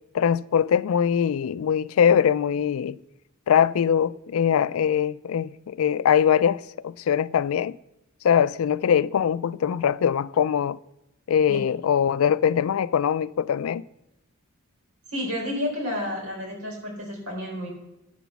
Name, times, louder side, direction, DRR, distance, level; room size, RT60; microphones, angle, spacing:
voice 1, 0.1-3.0 3.5-7.7 8.2-10.8 11.3-13.8, left 8 dB, 75° left, 0.3 m, -22 dB
voice 2, 15.1-17.7, left 1 dB, 85° right, 4.1 m, -30 dB
9.9 x 6.0 x 6.9 m
head